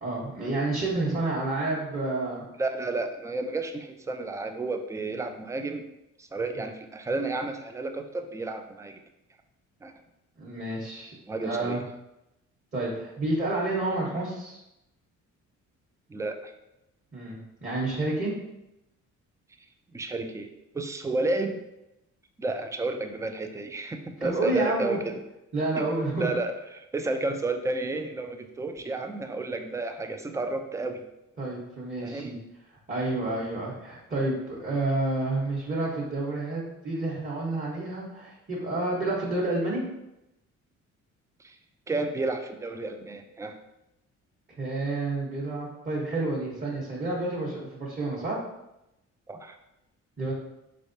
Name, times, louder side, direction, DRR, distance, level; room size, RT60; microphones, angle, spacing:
voice 1, 0.0-2.4 10.4-11.1 11.4-11.8 12.7-14.6 17.1-18.3 24.2-25.0 25.5-26.3 31.4-32.4 32.9-39.8 44.6-48.4 50.2-50.3, right 2 dB, 30° right, -5 dB, 1.1 m, -29 dB
voice 2, 2.6-5.9 6.2-9.0 9.8-9.9 11.3-11.8 16.1-16.5 19.9-20.5 20.7-21.6 22.4-25.2 25.8-25.9 26.1-31.0 32.0-32.3 41.4-41.6 41.9-43.6 49.3-49.6, right 2 dB, 10° right, 6 dB, 0.4 m, -31 dB
4.3 x 3.3 x 2.7 m, 0.89 s
cardioid pair, 90°, 30 cm